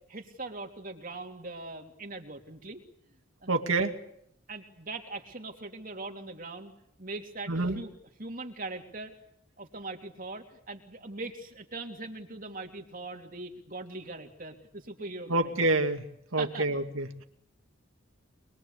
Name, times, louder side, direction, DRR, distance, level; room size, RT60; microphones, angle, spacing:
voice 1, 0.1-2.8 3.4-3.5 4.5-6.7 7.0-7.9 8.2-9.1 9.6-15.5 16.4-16.7, right 2 dB, 40° right, 4 dB, 3.1 m, -41 dB
voice 2, 3.5-4.0 7.5-7.8 15.3-16.1 16.3-17.2, right 2 dB, 75° right, 6 dB, 2.3 m, -27 dB
25.5 x 22.5 x 8.2 m, 0.72 s
head